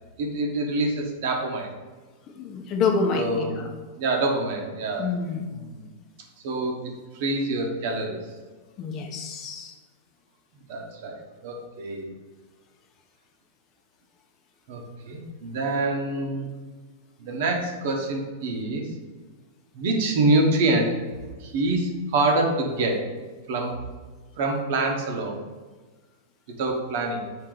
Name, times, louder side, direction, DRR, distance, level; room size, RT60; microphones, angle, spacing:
voice 1, 0.2-1.7 3.1-3.5 4.0-5.2 5.5-5.8 6.4-8.2 10.7-12.1 14.7-16.5 17.2-18.9 19.7-21.0 21.4-23.0 23.5-23.7 24.4-25.4 26.5-27.2, right 2 dB, 60° right, 1 dB, 1.0 m, -26 dB
voice 2, 2.4-3.7 5.0-5.4 8.8-9.7, left 5 dB, 35° left, 2 dB, 0.7 m, -27 dB
4.7 x 2.9 x 3.8 m, 1.4 s
hypercardioid pair, 130°, 0 cm